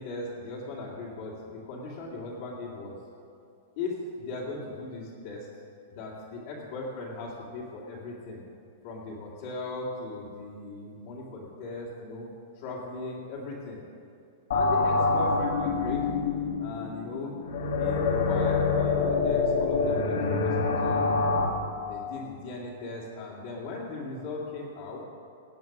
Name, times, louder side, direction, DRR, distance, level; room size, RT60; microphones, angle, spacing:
voice 1, 0.0-3.0 3.8-5.5 5.9-8.4 8.8-12.3 12.5-13.8 14.5-16.0 16.6-17.3 17.8-21.1 21.9-25.0, left 3 dB, 45° left, -5 dB, 2.4 m, -38 dB
sound 1, 14.5-21.5, left 4 dB, 75° left, 2.3 m, -26 dB
17.5 x 8.2 x 6.0 m, 2.5 s
supercardioid pair, 175°, 0 cm